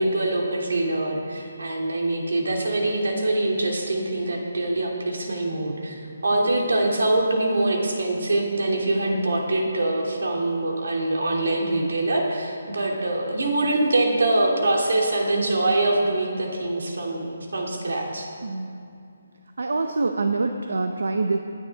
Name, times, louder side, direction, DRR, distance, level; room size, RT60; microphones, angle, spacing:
voice 1, 0.0-18.3, right 2 dB, 70° right, -1 dB, 2.6 m, -24 dB
voice 2, 18.4-18.8 19.6-21.4, right 3 dB, 90° right, 6 dB, 0.8 m, -25 dB
19.0 x 9.8 x 3.6 m, 2.5 s
hypercardioid pair, 180°, 0 cm